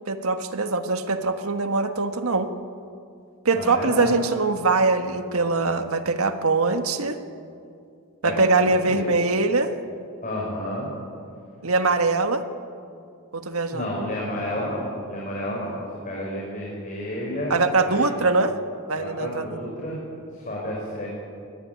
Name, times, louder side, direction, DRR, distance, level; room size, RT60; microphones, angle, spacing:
voice 1, 0.1-2.5 3.4-7.2 8.2-9.7 11.6-12.4 13.3-13.8 17.5-18.5 18.9-19.6, right 3 dB, 85° right, 7 dB, 1.6 m, -22 dB
voice 2, 3.5-4.1 8.2-9.1 10.2-10.9 13.7-15.7 16.0-17.6 17.8-18.1 19.0-20.0 20.3-21.1, left 1 dB, 35° left, -4 dB, 5.5 m, -31 dB
23.5 x 19.0 x 9.5 m, 2.4 s
head